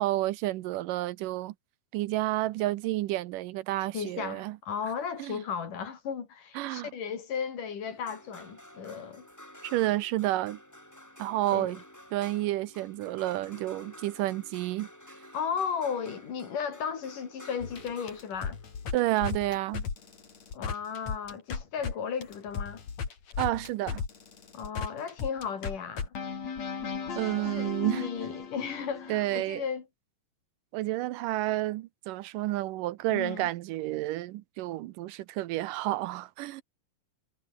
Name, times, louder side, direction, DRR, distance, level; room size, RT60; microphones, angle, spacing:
voice 1, 0.0-1.5 1.9-4.6 5.2-5.4 6.6-6.9 9.6-10.6 11.2-11.8 12.1-14.9 18.9-19.9 23.4-24.0 27.2-28.1 29.1-29.6 30.7-36.6, right 16 dB, 80° right, 2.3 m, -30 dB
voice 2, 3.9-9.3 11.5-11.7 15.3-18.6 20.5-22.8 24.5-26.2 27.4-29.8 33.1-33.5, left 7 dB, 65° left, 4.7 m, -35 dB
sound 1, 7.8-20.2 21.8-21.9, left 1 dB, 5° left, 4.1 m, -51 dB
sound 2, 17.6-21.9 22.2-29.4, left 6 dB, 50° left, 4.5 m, -36 dB
omnidirectional pair, 4.0 m